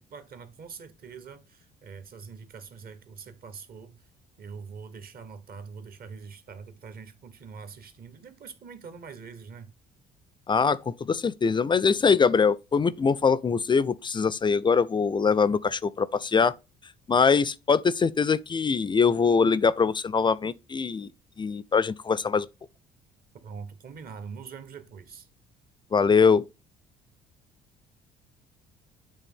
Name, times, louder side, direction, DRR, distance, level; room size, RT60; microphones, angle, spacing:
voice 1, 0.0-4.0 4.4-9.7 23.4-25.3, right 5 dB, 50° right, 1.1 m, -44 dB
voice 2, 10.5-16.5 17.1-21.1 21.4-22.5 25.9-26.4, left 5 dB, 25° left, 0.4 m, -23 dB
8.3 x 3.3 x 3.6 m
supercardioid pair, 65°, 19 cm